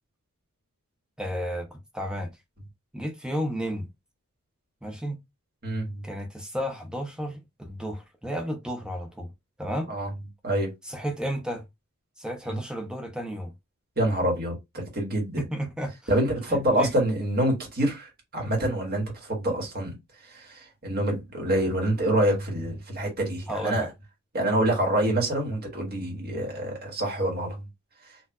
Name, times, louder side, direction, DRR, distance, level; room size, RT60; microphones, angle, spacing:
voice 1, 1.2-2.3 2.9-3.9 4.8-5.2 6.0-9.3 9.6-9.9 10.8-11.6 12.2-13.5 15.4-15.9 16.5-17.0 23.5-23.9, equal, 5° right, 0.7 m, -32 dB
voice 2, 5.6-6.1 9.9-10.1 10.4-10.7 12.5-12.6 14.0-15.4 16.1-20.0 20.2-23.9 24.3-27.7, right 1 dB, 45° right, 1.6 m, -26 dB
4.3 x 2.6 x 2.3 m
head